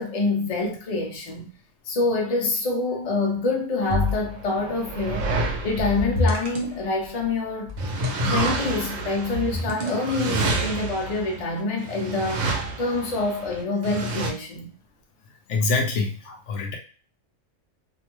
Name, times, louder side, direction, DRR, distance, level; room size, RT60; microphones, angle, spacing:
voice 1, 0.0-1.5 1.9-5.3 5.6-7.7 8.2-14.7 16.3-16.4, left 3 dB, 40° left, 0.6 m, -26 dB
sound 1, 3.9-4.4 5.8-6.8 7.7-8.4 9.3-10.2, left 2 dB, 55° right, 0.6 m, -27 dB
sound 2, 4.1-7.2 7.8-14.3, right 3 dB, 80° right, 1.0 m, -29 dB
voice 2, 15.5-16.2 16.5-16.8, left 3 dB, 70° left, 0.9 m, -24 dB
2.6 x 2.2 x 2.9 m
omnidirectional pair, 1.3 m